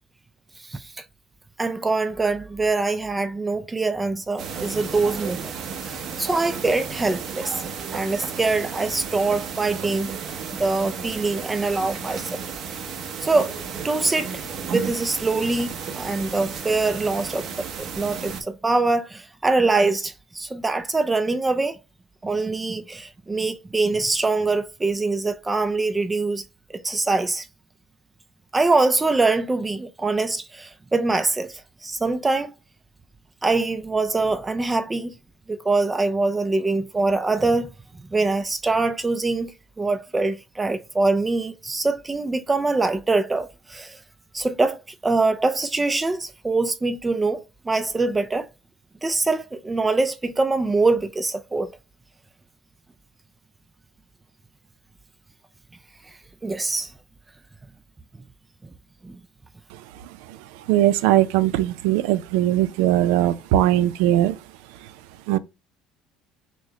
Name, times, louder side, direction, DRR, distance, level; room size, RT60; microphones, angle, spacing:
voice 1, 1.6-5.5 5.8-7.5 7.9-10.1 10.5-12.4 13.2-13.5 13.8-14.4 14.7-21.8 22.2-26.4 26.7-27.5 28.5-32.5 33.4-35.1 35.5-37.7 38.1-44.0 44.3-48.5 49.0-51.7 56.4-56.9 59.0-59.2, right 3 dB, 10° right, 0.4 m, -24 dB
sound 1, 4.4-18.4, right 6 dB, 45° right, 0.8 m, -33 dB
voice 2, 60.7-64.4 65.3-65.4, right 13 dB, 85° right, 0.4 m, -19 dB
6.1 x 2.1 x 2.8 m
cardioid pair, 135°, 0 cm